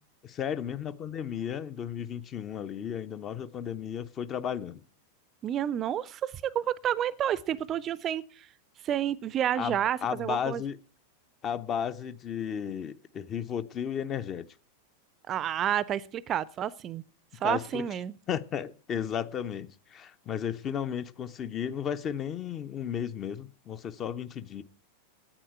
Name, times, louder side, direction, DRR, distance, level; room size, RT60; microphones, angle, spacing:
voice 1, 0.2-4.8 9.6-10.8 11.4-14.5 17.4-17.8 18.3-24.6, left 8 dB, 30° left, 0.7 m, -34 dB
voice 2, 5.4-8.5 8.8-10.6 15.3-17.0 17.4-18.1, right 10 dB, 30° right, 0.5 m, -30 dB
10.0 x 9.3 x 9.0 m
figure-of-eight pair, 90°, 0 cm